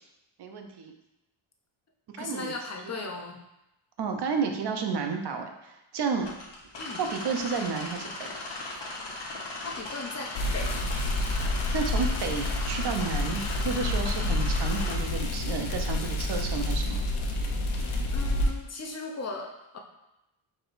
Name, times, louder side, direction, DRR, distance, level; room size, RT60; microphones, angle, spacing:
voice 1, 0.4-0.9 2.1-2.5 2.9-3.1 4.0-6.3 7.0-8.5 11.6-17.0, right 5 dB, 55° right, 4 dB, 0.7 m, -31 dB
voice 2, 2.2-3.4 6.8-7.0 9.6-10.7 18.1-19.8, left 3 dB, 30° left, 2 dB, 0.7 m, -37 dB
sound 1, 6.2-15.0, left 2 dB, 55° left, 1.2 m, -38 dB
sound 2, 10.3-18.5, left 1 dB, 70° left, 0.8 m, -28 dB
4.8 x 4.2 x 2.5 m, 0.91 s
cardioid pair, 105°, 50 cm